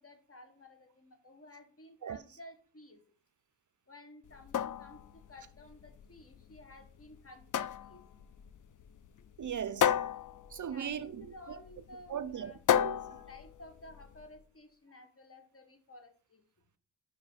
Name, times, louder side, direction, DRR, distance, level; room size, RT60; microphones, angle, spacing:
voice 1, 0.0-3.0 3.9-8.1 10.7-12.6 13.3-16.4, left 2 dB, 35° left, 1.4 m, -54 dB
sound 1, 4.3-14.3, left 9 dB, 50° left, 0.4 m, -34 dB
voice 2, 9.4-10.1 10.5-11.6 12.1-13.2, right 8 dB, 50° right, 0.5 m, -39 dB
5.3 x 4.8 x 4.9 m
cardioid pair, 60°, 40 cm